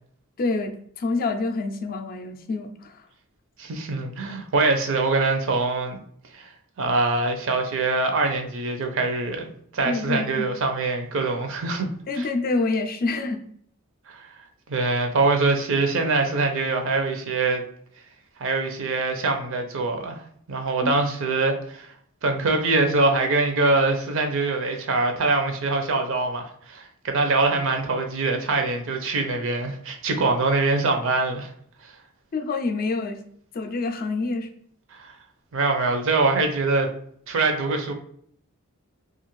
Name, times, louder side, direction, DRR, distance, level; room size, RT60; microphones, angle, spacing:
voice 1, 0.4-0.7 1.0-3.0 9.8-10.5 12.1-13.4 20.8-20.9 32.3-33.2 33.5-34.5, left 3 dB, 45° left, 6 dB, 0.4 m, -27 dB
voice 2, 3.6-6.0 6.3-6.5 6.8-9.5 9.7-11.9 12.1-12.3 14.1-14.3 14.7-17.6 18.4-20.2 20.5-21.9 22.2-31.5 34.9-35.1 35.5-36.9 37.3-37.9, right 3 dB, 65° right, 5 dB, 0.5 m, -23 dB
2.5 x 2.4 x 3.0 m, 0.63 s
head